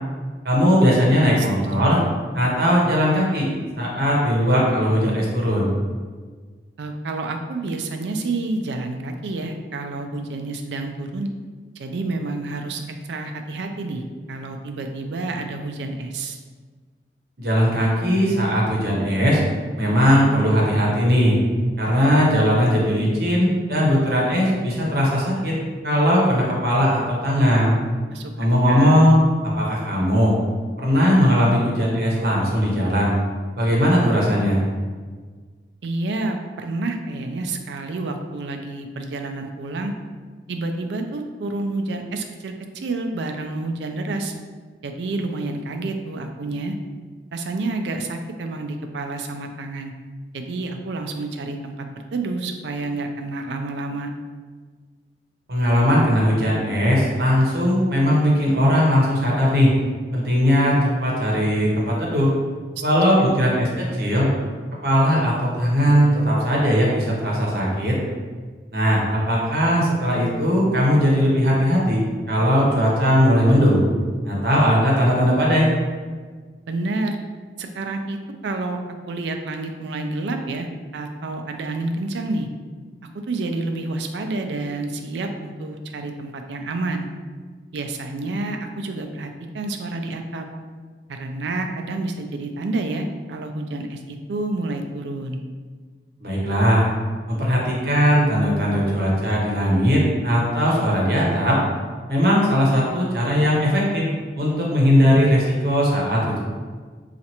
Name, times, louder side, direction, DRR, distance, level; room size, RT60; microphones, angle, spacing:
voice 1, 0.4-2.0 2.3-3.5 3.8-5.7 17.4-19.4 19.8-21.4 21.8-25.6 25.8-27.8 28.4-30.3 30.8-33.1 33.6-34.6 55.5-59.7 60.1-62.3 62.8-64.3 64.8-68.0 68.7-72.0 72.3-73.8 74.2-75.7 96.2-96.9 97.3-101.6 102.1-104.0 104.4-106.4, equal, 60° right, -4 dB, 0.9 m, -19 dB
voice 2, 6.8-11.3 11.8-14.0 14.3-16.4 28.1-28.3 28.7-29.2 35.8-39.9 40.5-44.3 44.8-46.7 47.3-49.9 50.3-51.9 52.1-54.1 63.2-63.4 76.7-77.2 77.6-78.2 78.4-78.8 79.1-82.5 83.0-87.1 87.7-90.5 91.1-95.4, right 2 dB, 85° right, 5 dB, 0.4 m, -29 dB
4.2 x 2.4 x 2.8 m, 1.5 s
head